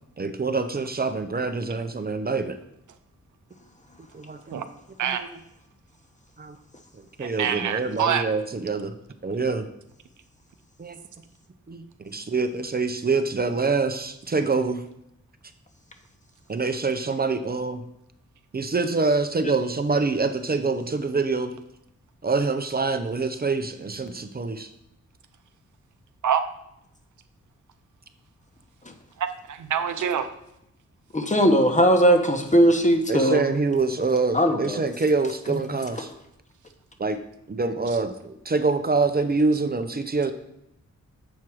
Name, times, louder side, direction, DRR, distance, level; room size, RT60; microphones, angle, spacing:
voice 1, 0.2-2.6 4.1-4.6 5.0-5.3 6.4-6.6 7.2-8.9 9.2-9.7 10.8-11.0 11.7-14.8 16.5-17.8 18.5-21.5 22.2-24.7 33.1-36.1 37.0-37.2 37.5-40.3, right 4 dB, 30° right, 8 dB, 0.6 m, -25 dB
voice 2, 7.2-8.3 26.2-26.4 29.2-30.3, right 8 dB, 85° right, 9 dB, 0.6 m, -25 dB
voice 3, 31.1-33.4 34.3-34.8 35.5-35.6, equal, 25° left, 5 dB, 1.1 m, -19 dB
7.3 x 4.5 x 4.7 m, 0.79 s
cardioid pair, 60°, 30 cm